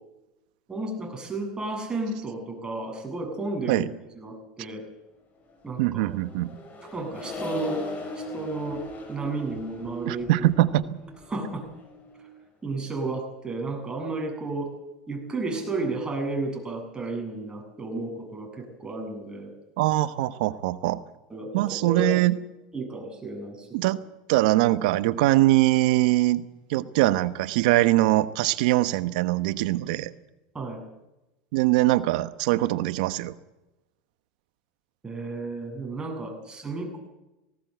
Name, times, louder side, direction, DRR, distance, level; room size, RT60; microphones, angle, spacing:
voice 1, 0.7-3.9 4.2-4.8 5.6-6.1 6.9-7.9 8.2-10.5 11.3-11.6 12.6-14.7 15.1-19.5 21.3-22.2 22.7-23.9 30.5-30.8 35.0-37.0, right 2 dB, 15° right, 2 dB, 7.8 m, -32 dB
Accelerating revving vroom, 5.7-12.4, left 2 dB, 35° left, 6.3 m, -38 dB
voice 2, 5.8-6.5 10.0-11.0 19.8-21.0 21.5-22.4 23.7-24.0 24.3-26.4 26.7-30.1 31.5-33.3, right 16 dB, 70° right, 13 dB, 1.2 m, -22 dB
19.0 x 18.0 x 8.1 m, 0.97 s
hypercardioid pair, 105°, 5 cm